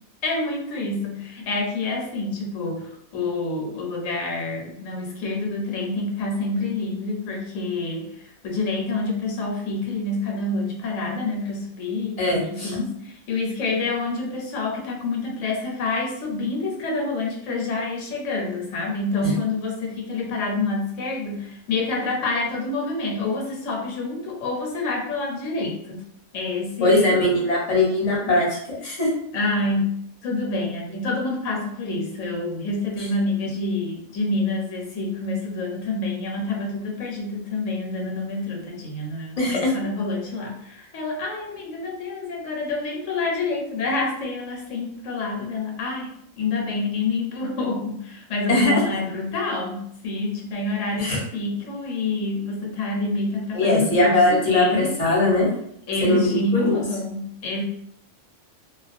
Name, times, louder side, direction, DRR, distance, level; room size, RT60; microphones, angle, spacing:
voice 1, 0.2-26.0 26.3-27.2 29.3-29.9 30.2-54.9 55.9-57.6, left 3 dB, 75° left, 0 dB, 1.0 m, -27 dB
voice 2, 12.2-12.7 19.2-19.3 26.8-29.1 33.0-33.1 39.4-39.7 48.5-48.8 51.0-51.2 53.5-55.5 56.0-56.7, left 1 dB, 35° left, -4 dB, 0.7 m, -20 dB
2.2 x 2.2 x 2.5 m, 0.69 s
omnidirectional pair, 1.3 m